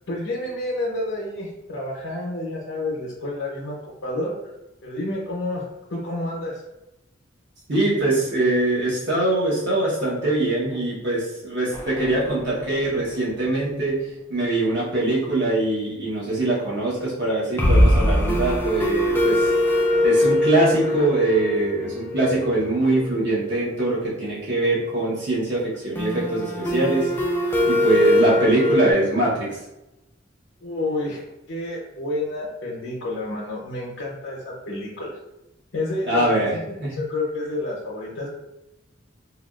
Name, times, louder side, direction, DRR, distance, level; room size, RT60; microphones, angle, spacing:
voice 1, 0.1-4.5 4.8-5.6 5.9-6.6 30.6-35.2 35.7-38.3, left 2 dB, 85° left, -5 dB, 0.7 m, -29 dB
voice 2, 7.7-14.0 14.3-19.5 20.0-27.1 27.7-29.6 36.1-36.5 36.8-36.9, right 2 dB, 60° right, -7 dB, 1.0 m, -22 dB
sound 1, 11.7-12.9 13.2-13.3 13.6-13.7 17.6-23.2 26.0-28.9, left 1 dB, 10° left, 0.3 m, -22 dB
3.4 x 2.3 x 2.3 m, 0.93 s
head